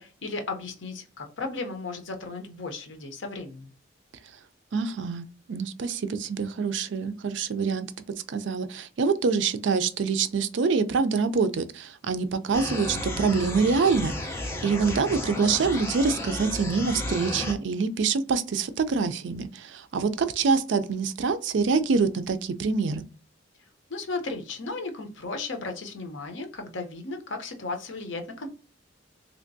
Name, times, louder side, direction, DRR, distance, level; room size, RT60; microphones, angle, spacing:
voice 1, 0.0-3.7 23.9-28.5, left 3 dB, 75° left, 0.7 m, -35 dB
voice 2, 4.7-7.9 8.3-23.0, right 5 dB, 70° right, 0.4 m, -25 dB
sound 1, 12.5-17.5, left 1 dB, 15° left, 0.6 m, -33 dB
3.3 x 2.8 x 2.6 m
head